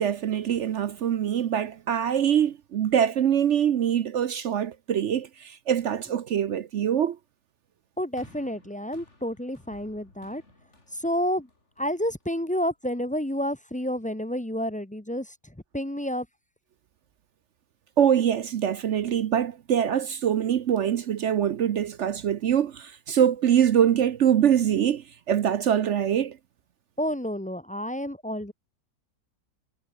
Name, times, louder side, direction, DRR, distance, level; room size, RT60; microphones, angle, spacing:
voice 1, 0.0-7.2 18.0-26.4, right 9 dB, 60° right, 0.8 m, -24 dB
voice 2, 8.0-10.4 10.9-11.5 11.8-15.3 15.7-16.3 27.0-28.5, equal, 5° left, 0.7 m, -29 dB
sound 1, 8.2-12.5 13.3-13.4, left 2 dB, 40° left, 5.4 m, -56 dB
omnidirectional pair, 1.8 m